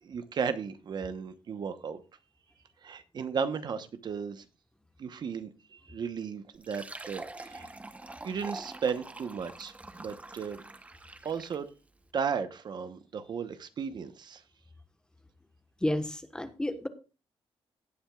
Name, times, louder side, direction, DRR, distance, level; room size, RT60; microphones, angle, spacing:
voice 1, 0.0-2.0 2.8-4.5 5.0-7.7 8.2-10.6 11.2-11.7 12.1-14.4, right 6 dB, 50° right, 1.0 m, -35 dB
Fill (with liquid), 6.5-11.7, right 2 dB, 15° right, 0.9 m, -45 dB
voice 2, 15.8-16.9, left 1 dB, 10° left, 1.2 m, -31 dB
17.5 x 8.8 x 2.4 m
cardioid pair, 140°, 10 cm